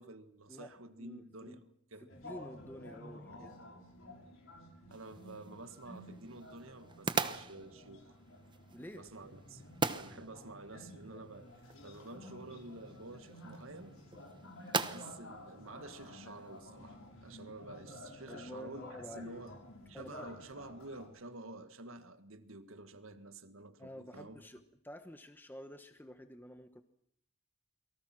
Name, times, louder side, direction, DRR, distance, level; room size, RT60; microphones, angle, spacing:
voice 1, 0.0-2.1 4.9-8.2 8.9-11.5 11.8-14.0 14.7-19.5 19.9-24.4, right 2 dB, 75° right, 1.8 m, -50 dB
voice 2, 1.0-1.6 2.0-3.6 8.7-9.0 18.3-19.5 19.9-20.3 23.8-26.8, equal, 10° left, 1.0 m, -50 dB
sound 1, 2.1-21.1, left 1 dB, 70° left, 6.0 m, -52 dB
sound 2, 4.9-16.6, right 4 dB, 20° right, 1.0 m, -42 dB
29.5 x 23.5 x 6.1 m
head